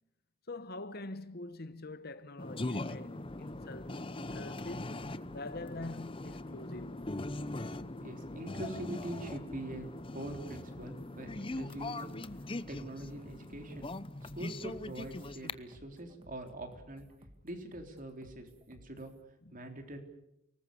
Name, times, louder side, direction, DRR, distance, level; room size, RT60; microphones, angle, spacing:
voice 1, 0.5-7.0 19.4-19.7, left 2 dB, 50° left, 1.1 m, -45 dB
sound 1, 2.0-16.3, left 2 dB, 75° right, 4.9 m, -67 dB
sound 2, 2.4-15.5, left 2 dB, 25° left, 0.8 m, -41 dB
sound 3, 3.2-19.2, equal, 25° right, 2.3 m, -58 dB
voice 2, 8.0-12.2 12.7-13.9 14.2-17.1 17.4-19.1 19.5-20.0, right 1 dB, 40° right, 3.7 m, -43 dB
29.5 x 19.5 x 6.9 m
head